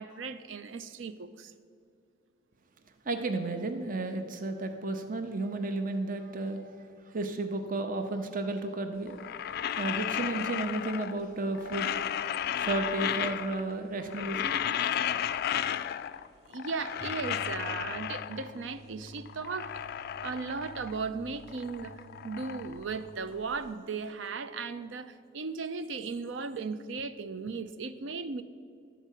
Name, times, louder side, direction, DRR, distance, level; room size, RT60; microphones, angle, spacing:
voice 1, 0.0-1.5 16.5-19.9 20.2-28.4, right 4 dB, 80° right, 12 dB, 0.5 m, -37 dB
voice 2, 3.1-6.7 7.0-9.2 9.8-12.2 12.5-14.6, right 2 dB, 45° right, 7 dB, 0.7 m, -33 dB
sound 1, 9.1-11.3 11.5-13.7 14.0-16.3 16.5-18.6 19.1-21.1 21.4-23.6, left 9 dB, 55° left, 0.3 m, -34 dB
sound 2, 17.0-23.0, right 1 dB, 20° right, 0.9 m, -50 dB
12.0 x 4.6 x 8.2 m, 2.3 s
head